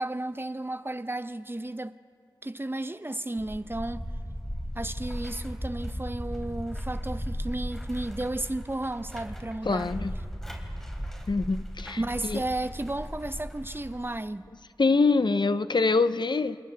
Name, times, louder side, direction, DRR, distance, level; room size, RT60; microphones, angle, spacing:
voice 1, 0.0-1.9 2.4-4.0 4.7-9.9 12.0-14.5, right 1 dB, 30° right, 0.6 m, -33 dB
sound 1, 3.4-14.2, equal, 5° left, 3.5 m, -36 dB
voice 2, 9.7-10.1 11.3-12.0 12.2-12.4 14.8-16.6, left 3 dB, 70° left, 0.6 m, -24 dB
28.5 x 28.0 x 3.4 m
wide cardioid pair, 45°, 8 cm